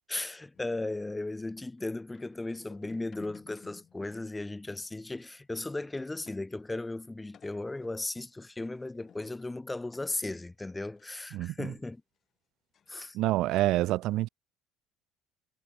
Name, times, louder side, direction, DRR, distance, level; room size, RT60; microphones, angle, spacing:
voice 1, 0.1-12.0 12.9-13.2, left 2 dB, 10° left, 2.4 m, -36 dB
sound 1, 0.5-6.7 7.0-7.1 7.3-11.1 11.6-11.7 11.9-12.0 12.7-13.0 13.3-13.6, left 8 dB, 40° left, 5.2 m, -59 dB
voice 2, 13.1-14.3, right 16 dB, 65° right, 0.3 m, -27 dB
cardioid pair, 120°, 0 cm